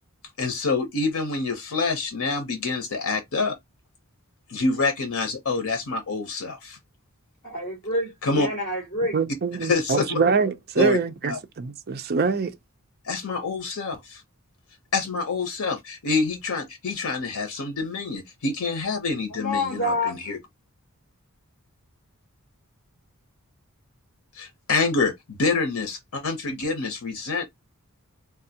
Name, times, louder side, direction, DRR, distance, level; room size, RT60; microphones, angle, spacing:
voice 1, 0.4-3.6 4.5-6.8 8.2-8.5 9.6-10.2 10.8-11.0 11.3-11.4 13.0-14.2 14.9-20.4 24.3-27.5, left 3 dB, 80° left, 0.8 m, -26 dB
voice 2, 7.4-9.2 19.3-20.3, left 1 dB, 30° left, 2.3 m, -28 dB
voice 3, 9.1-12.6, right 5 dB, 45° right, 0.5 m, -24 dB
3.3 x 2.4 x 2.8 m
head